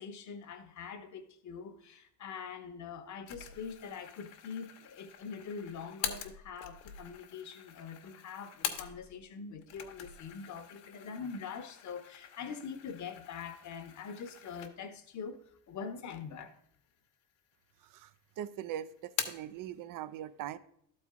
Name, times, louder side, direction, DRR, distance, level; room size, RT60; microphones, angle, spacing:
voice 1, 0.0-15.4 15.7-16.5, left 6 dB, 40° left, 1.0 m, -44 dB
sound 1, 3.3-9.3 9.6-15.1 15.5-15.6 16.4-17.1 17.4-18.2 18.5-19.6, left 9 dB, 75° left, 1.1 m, -44 dB
voice 2, 18.4-20.6, right 11 dB, 50° right, 0.6 m, -41 dB
12.0 x 4.4 x 3.6 m
cardioid pair, 105°, 44 cm